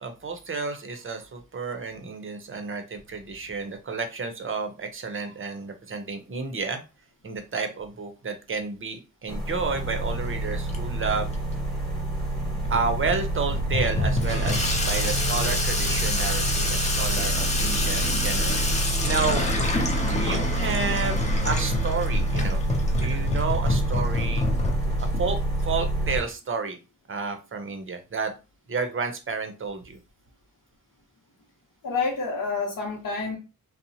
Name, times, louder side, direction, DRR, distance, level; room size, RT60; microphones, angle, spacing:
voice 1, 0.0-6.8 7.2-11.3 12.7-19.4 20.0-21.2 21.4-22.6 22.9-24.5 25.0-25.4 25.6-26.8 27.1-28.3 28.7-30.0, right 4 dB, 35° right, 6 dB, 0.6 m, -31 dB
sound 1, 9.3-26.2, right 2 dB, ahead, 1.0 m, -27 dB
Water tap faucet / Sink (filling or washing), 9.7-25.7, left 2 dB, 20° left, 0.5 m, -29 dB
voice 2, 31.8-33.4, left 4 dB, 65° left, 0 dB, 0.8 m, -28 dB
2.7 x 2.0 x 2.7 m, 0.30 s
wide cardioid pair, 90°, 34 cm